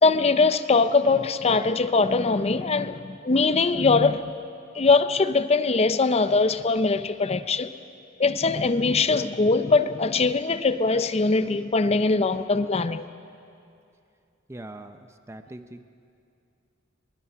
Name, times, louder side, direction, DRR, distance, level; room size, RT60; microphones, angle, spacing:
voice 1, 0.0-4.3 4.7-7.7 8.2-13.1, left 3 dB, 30° left, 12 dB, 0.6 m, -22 dB
voice 2, 14.5-15.0 15.3-15.8, right 1 dB, 15° right, 8 dB, 0.6 m, -40 dB
22.5 x 22.5 x 5.7 m, 2.5 s
head